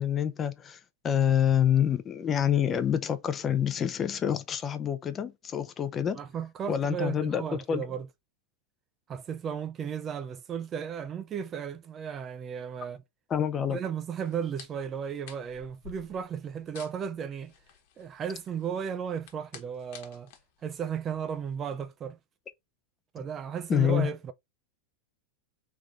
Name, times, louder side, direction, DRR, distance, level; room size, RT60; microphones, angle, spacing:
voice 1, 0.0-6.2 6.7-7.8 13.3-13.8 23.7-24.1, left 9 dB, 25° left, 0.6 m, -27 dB
voice 2, 6.1-8.1 9.1-13.0 13.7-17.5 18.0-20.3 20.6-22.2 23.1-24.3, right 7 dB, 25° right, 0.4 m, -35 dB
sound 1, 14.2-21.5, left 8 dB, 60° left, 1.2 m, -52 dB
3.5 x 3.5 x 3.7 m
supercardioid pair, 135°, 0 cm